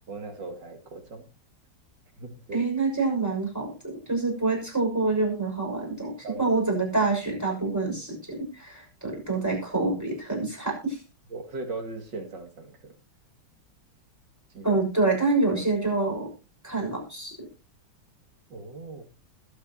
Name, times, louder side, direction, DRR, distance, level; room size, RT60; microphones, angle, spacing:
voice 1, 0.1-1.2 2.2-2.6 6.2-6.4 11.3-12.7 14.5-14.8 18.5-19.0, right 3 dB, 60° right, 6 dB, 3.0 m, -38 dB
voice 2, 2.5-11.0 14.6-16.3 16.6-17.3, right 3 dB, 5° right, -2 dB, 6.1 m, -26 dB
21.0 x 8.2 x 2.9 m, 0.30 s
omnidirectional pair, 2.3 m